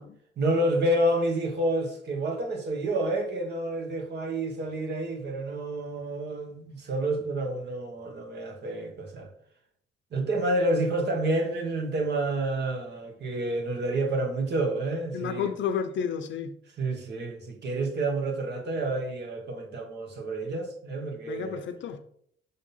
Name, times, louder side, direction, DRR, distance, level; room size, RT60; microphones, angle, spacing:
voice 1, 0.4-9.3 10.1-15.5 16.8-21.6, right 1 dB, 60° right, 1.6 m, -29 dB
voice 2, 15.1-16.5 21.3-22.0, left 7 dB, 70° left, 0.7 m, -31 dB
5.7 x 3.7 x 5.6 m
cardioid pair, 90°, 20 cm